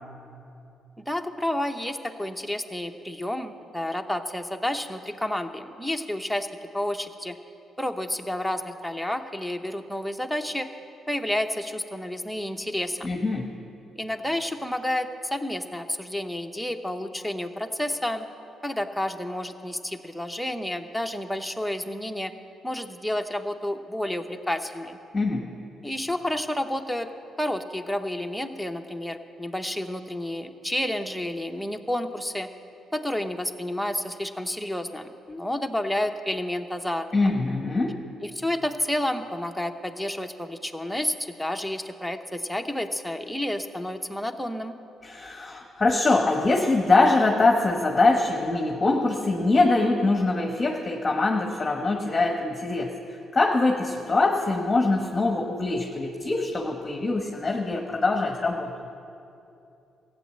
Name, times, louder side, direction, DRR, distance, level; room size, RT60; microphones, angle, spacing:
voice 1, 1.0-6.5 6.7-7.4 7.8-10.7 11.1-13.1 14.0-18.3 18.6-22.3 22.6-25.0 25.8-27.1 27.4-32.5 32.9-37.3 38.2-44.8, left 1 dB, ahead, 4 dB, 0.9 m, -30 dB
voice 2, 13.0-13.5 25.1-25.5 37.1-38.0 45.0-58.7, left 3 dB, 25° left, 2 dB, 1.1 m, -23 dB
15.0 x 8.9 x 7.6 m, 2.7 s
cardioid pair, 90°, 0 cm